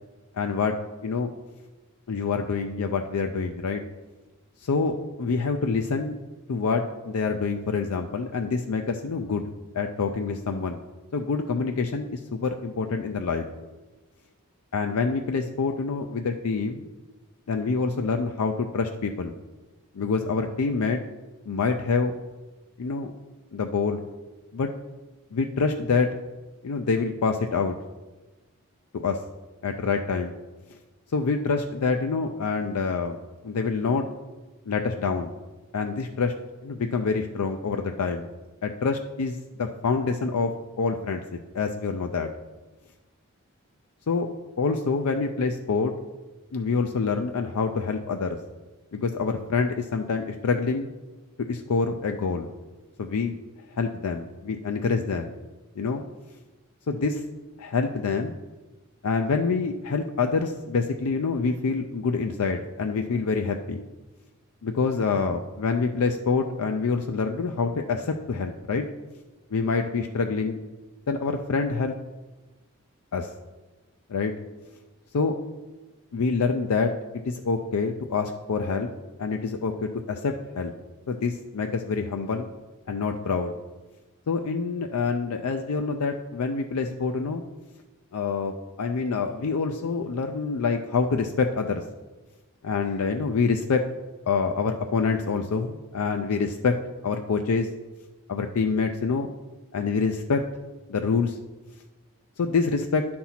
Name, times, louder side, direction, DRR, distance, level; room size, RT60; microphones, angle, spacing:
voice 1, 0.3-0.7 1.0-1.3 2.1-3.8 4.6-6.2 6.5-9.5 9.7-10.8 11.1-13.5 14.7-16.9 17.5-19.3 19.9-21.0 21.5-22.1 22.8-23.1 23.5-24.0 24.5-24.7 25.3-26.2 26.6-27.8 28.9-29.2 29.6-30.4 31.1-33.2 33.4-34.0 34.7-35.3 35.7-36.3 36.6-38.3 38.6-41.2 41.5-42.3 44.1-44.3 44.6-45.9 46.5-48.4 48.9-50.9 51.5-52.5 53.0-53.4 53.8-55.3 55.8-56.0 56.9-57.2 57.6-58.3 59.0-63.8 64.6-68.9 69.5-70.6 71.1-72.0 73.1-73.3 74.1-74.3 75.1-75.3 76.1-76.9 77.3-78.9 79.2-80.7 81.1-82.5 82.9-83.5 84.3-87.4 88.1-91.8 92.6-93.9 94.3-96.8 97.0-97.7 98.3-99.3 99.7-100.4 100.9-101.4 102.4-103.1, left 4 dB, 85° left, 5 dB, 0.5 m, -26 dB
10.5 x 4.3 x 5.7 m, 1.2 s
head